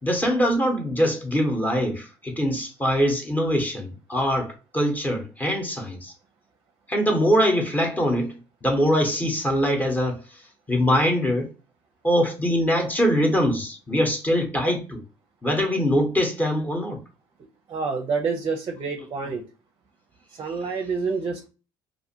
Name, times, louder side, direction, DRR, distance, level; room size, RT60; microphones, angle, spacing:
voice 1, 0.0-6.1 6.9-10.4 10.7-11.5 12.0-15.0 15.4-17.0, equal, 15° left, 0.9 m, -23 dB
voice 2, 17.7-19.4 20.4-21.5, right 4 dB, 40° right, 0.5 m, -28 dB
2.5 x 2.4 x 2.7 m
supercardioid pair, 80°, 11 cm